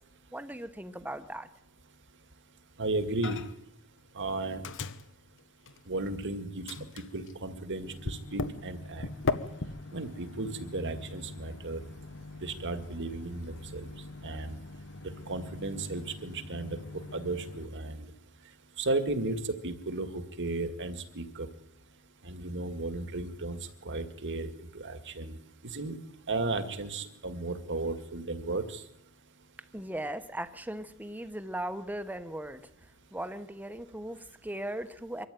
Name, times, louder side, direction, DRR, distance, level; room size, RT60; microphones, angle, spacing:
voice 1, 0.3-1.5 29.7-35.3, right 1 dB, 10° right, 11 dB, 1.2 m, -38 dB
voice 2, 2.8-3.4 4.2-4.6 5.9-6.7 7.1-9.1 9.9-11.8 12.4-13.9 14.2-14.6 15.3-18.1 18.8-21.5 22.2-23.6 23.8-25.4 25.7-26.0 26.3-28.8, right 2 dB, 55° right, 9 dB, 2.1 m, -34 dB
Microwave oven, 3.2-3.7 4.0-6.3 6.7-17.7, left 3 dB, 60° left, 1.1 m, -40 dB
24.5 x 13.5 x 9.3 m, 0.85 s
head